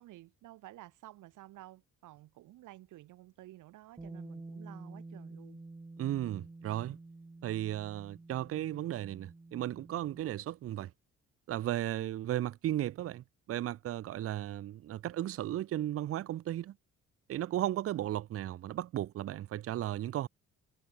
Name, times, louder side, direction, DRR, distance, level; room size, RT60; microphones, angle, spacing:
voice 1, 0.0-5.6, right 16 dB, 85° right, 1.7 m, -53 dB
Bass guitar, 4.0-10.2, right 3 dB, 15° right, 1.5 m, -49 dB
voice 2, 6.0-7.0 7.4-10.9 11.5-16.8 17.3-20.3, right 13 dB, 50° right, 0.5 m, -35 dB
cardioid pair, 90°, 30 cm